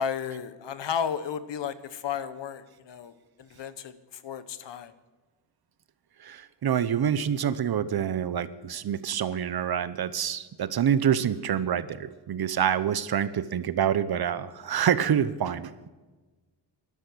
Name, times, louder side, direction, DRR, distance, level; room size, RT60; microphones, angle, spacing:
voice 1, 0.0-3.1 3.4-4.9, left 7 dB, 75° left, 13 dB, 1.1 m, -33 dB
voice 2, 6.2-15.9, right 9 dB, 60° right, 14 dB, 0.9 m, -27 dB
12.5 x 12.0 x 6.3 m, 1.2 s
cardioid pair, 95°, 43 cm